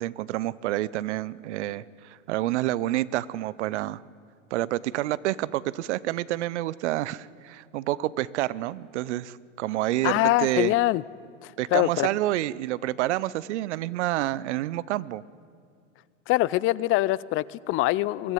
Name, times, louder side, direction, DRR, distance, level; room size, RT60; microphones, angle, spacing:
voice 1, 0.0-4.0 4.5-10.7 11.6-15.2, right 15 dB, 65° right, 21 dB, 0.8 m, -28 dB
voice 2, 10.0-11.0 11.4-12.1 16.3-18.3, left 18 dB, 35° left, 21 dB, 0.5 m, -24 dB
23.5 x 14.5 x 9.3 m, 2.3 s
hypercardioid pair, 100°, 37 cm